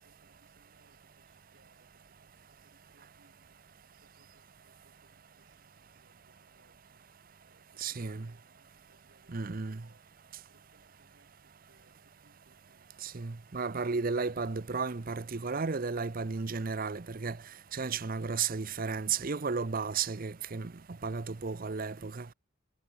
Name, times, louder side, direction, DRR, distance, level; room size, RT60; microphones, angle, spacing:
voice 1, 0.0-3.6 3.9-7.0 7.4-10.1 10.4-14.7, right 2 dB, 65° right, 5.7 m, -70 dB
voice 2, 7.8-8.3 9.3-9.8 13.0-17.4 17.7-20.7 21.0-22.3, right 5 dB, 45° right, 0.7 m, -33 dB
head